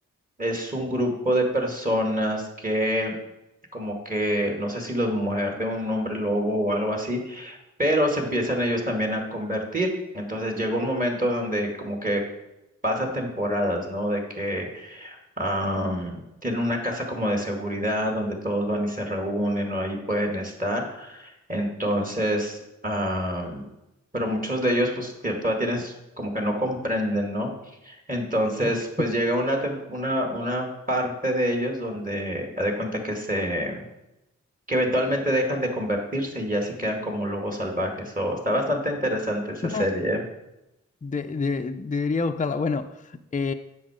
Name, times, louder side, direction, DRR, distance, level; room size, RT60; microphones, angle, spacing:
voice 1, 0.4-3.2 3.7-12.2 12.8-22.6 22.8-23.7 24.1-27.5 27.8-33.9 34.7-40.2, equal, 25° right, 1 dB, 2.3 m, -26 dB
voice 2, 41.0-43.5, left 4 dB, 25° left, 7 dB, 0.5 m, -27 dB
7.8 x 5.9 x 5.0 m, 0.92 s
cardioid pair, 40°, 31 cm